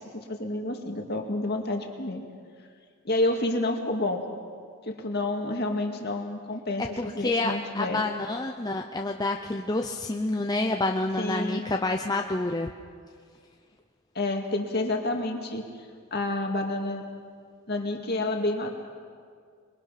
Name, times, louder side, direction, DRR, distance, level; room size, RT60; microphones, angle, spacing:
voice 1, 0.1-2.2 3.0-4.2 4.8-8.0 11.2-11.7 14.2-15.6 16.1-17.0 17.7-18.7, left 2 dB, 45° left, 3 dB, 2.2 m, -29 dB
voice 2, 7.0-12.7, left 2 dB, 15° left, 3 dB, 0.7 m, -28 dB
27.5 x 22.0 x 5.9 m, 2.1 s
head